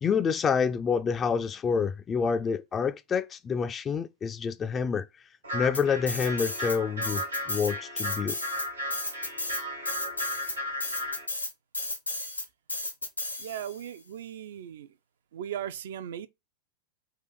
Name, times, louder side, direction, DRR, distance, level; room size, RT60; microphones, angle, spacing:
voice 1, 0.0-5.1 5.5-8.3, left 6 dB, 20° left, 0.3 m, -28 dB
sound 1, 5.4-11.3, equal, 75° right, 1.2 m, -35 dB
sound 2, 5.7-6.8 7.0-13.8, left 2 dB, 85° left, 0.9 m, -34 dB
voice 2, 13.4-14.9 15.3-16.3, right 10 dB, 60° right, 0.4 m, -37 dB
3.9 x 2.5 x 4.0 m
figure-of-eight pair, 90°, 0 cm